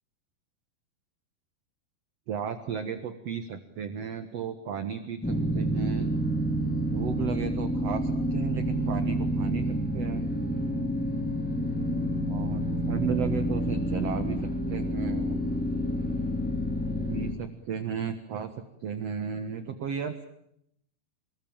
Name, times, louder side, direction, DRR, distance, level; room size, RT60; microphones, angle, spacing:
voice 1, 2.3-6.1 6.8-10.2 12.3-15.4 17.1-18.5 18.8-20.2, right 7 dB, 55° right, 9 dB, 2.1 m, -34 dB
sound 1, 5.2-17.3, equal, 5° left, 1.3 m, -29 dB
27.5 x 21.5 x 9.0 m, 0.76 s
omnidirectional pair, 4.4 m